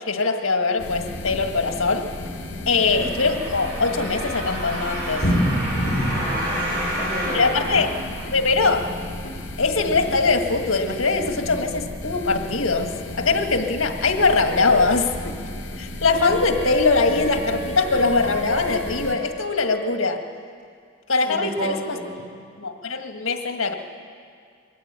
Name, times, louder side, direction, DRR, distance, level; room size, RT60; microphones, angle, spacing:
voice 1, 0.1-2.1 2.7-5.3 7.3-7.9 8.3-8.9 9.6-15.2 15.8-20.2 21.1-22.0 22.6-23.7, left 4 dB, 85° left, 5 dB, 1.7 m, -22 dB
sound 1, 0.8-19.1, left 1 dB, 60° left, 2.9 m, -31 dB
sound 2, 2.8-8.7 9.3-9.4, equal, 60° right, 5.5 m, -30 dB
voice 2, 6.0-7.6 21.2-22.2, right 1 dB, 20° right, -1 dB, 4.8 m, -32 dB
Wind instrument woodwind instrument, 16.1-20.2, right 4 dB, 80° right, 4.2 m, -34 dB
22.0 x 14.0 x 8.9 m, 2.1 s
head